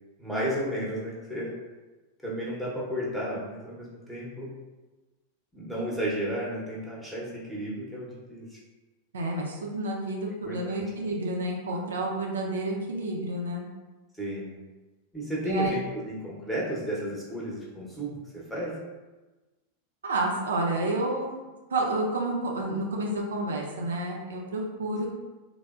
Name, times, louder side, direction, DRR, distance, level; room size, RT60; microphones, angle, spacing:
voice 1, 0.2-1.5 2.2-4.5 5.5-8.6 10.4-10.6 14.1-14.6 15.1-18.8, equal, ahead, -6 dB, 0.7 m, -33 dB
voice 2, 9.1-13.7 15.4-15.7 20.0-21.4 21.7-25.1, right 2 dB, 70° right, -1 dB, 0.4 m, -30 dB
3.2 x 2.0 x 2.3 m, 1.2 s
figure-of-eight pair, 90°, 0 cm